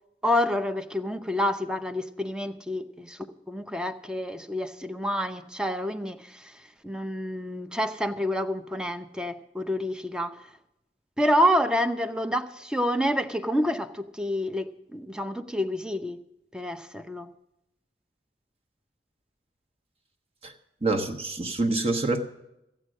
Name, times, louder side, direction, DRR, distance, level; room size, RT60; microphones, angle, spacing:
voice 1, 0.2-10.4 11.2-16.2 16.5-17.3, equal, 5° right, 0.6 m, -28 dB
voice 2, 20.8-22.2, right 2 dB, 35° right, 1.2 m, -26 dB
14.5 x 9.0 x 6.3 m
head